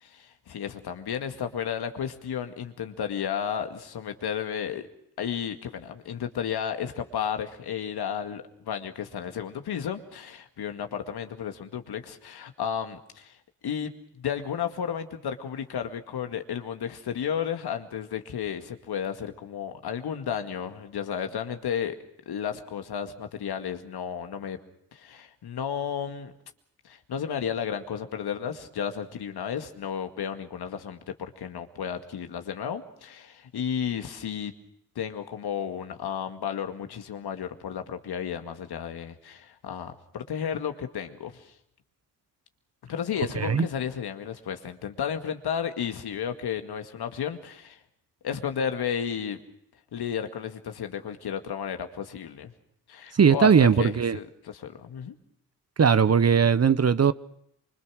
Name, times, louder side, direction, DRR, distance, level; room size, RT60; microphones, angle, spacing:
voice 1, 0.0-4.8 5.2-13.4 13.6-13.9 14.2-22.0 22.3-24.6 24.9-26.3 26.8-34.5 35.0-41.5 42.9-47.8 48.2-49.4 49.9-52.5 52.9-55.1, left 8 dB, 65° left, 2.1 m, -33 dB
voice 2, 43.4-43.7 53.1-54.2 55.8-57.1, right 6 dB, 35° right, 1.0 m, -19 dB
25.0 x 24.5 x 6.4 m
hypercardioid pair, 40°, 42 cm